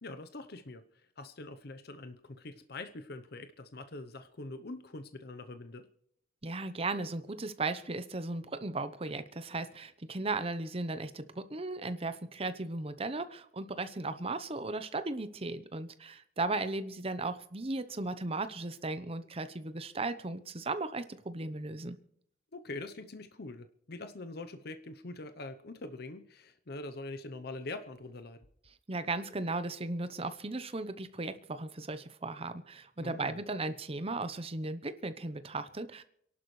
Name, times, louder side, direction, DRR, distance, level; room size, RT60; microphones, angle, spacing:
voice 1, 0.0-5.9 22.5-28.5 33.0-33.4, left 2 dB, 60° left, 9 dB, 0.9 m, -44 dB
voice 2, 6.4-22.0 28.9-36.0, right 3 dB, 35° right, 11 dB, 0.9 m, -36 dB
29.5 x 11.5 x 3.3 m, 0.69 s
head